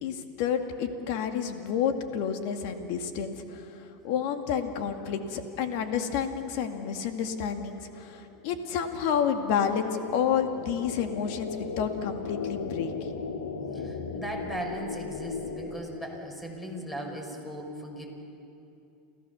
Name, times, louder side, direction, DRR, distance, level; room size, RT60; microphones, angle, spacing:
voice 1, 0.0-11.5 11.8-13.2, left 7 dB, 65° left, 6 dB, 2.1 m, -30 dB
sound 1, 7.7-16.6, left 5 dB, 85° left, 1.8 m, -38 dB
voice 2, 13.7-18.0, right 1 dB, 10° left, 2 dB, 5.5 m, -38 dB
29.0 x 15.0 x 7.1 m, 2.8 s
hypercardioid pair, 90°, 0 cm